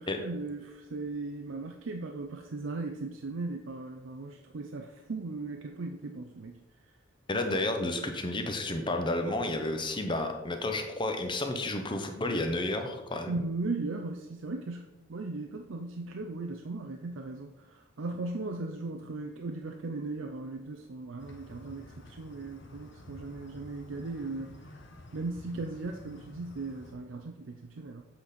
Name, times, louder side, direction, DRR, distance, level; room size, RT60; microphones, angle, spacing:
voice 1, 0.0-6.6 13.3-17.5 18.0-24.6 25.1-28.0, right 3 dB, 70° right, 4 dB, 0.5 m, -37 dB
voice 2, 7.3-13.3, left 2 dB, 25° left, 5 dB, 0.8 m, -31 dB
sound 1, 21.2-27.0, left 1 dB, 60° left, 1.0 m, -50 dB
7.7 x 4.1 x 5.1 m, 1.0 s
head